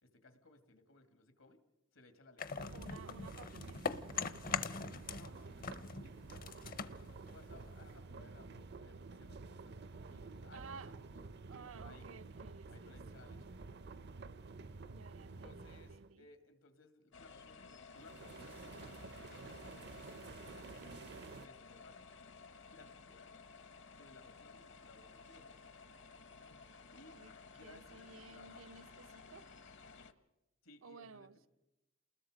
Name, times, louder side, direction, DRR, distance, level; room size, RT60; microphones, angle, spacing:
voice 1, 0.0-1.6 1.9-2.5 4.6-10.8 11.1-11.3 11.8-12.1 12.7-13.5 15.3-22.1 22.7-23.4 23.9-25.5 26.9-28.7 30.6-31.5, left 2 dB, 85° left, 2.3 m, -62 dB
sound 1, 2.4-5.3 5.6-8.0, left 5 dB, 45° left, 0.7 m, -41 dB
sound 2, 2.6-16.1 18.0-21.5, right 3 dB, 55° right, 0.6 m, -51 dB
voice 2, 2.7-3.8 10.5-10.9 11.5-13.0 14.9-16.3 20.8-21.2 27.1-27.3 27.6-29.5 30.8-31.4, right 4 dB, 90° right, 0.8 m, -55 dB
sound 3, 17.1-30.1, left 4 dB, 65° left, 1.1 m, -56 dB
28.5 x 20.5 x 5.1 m
head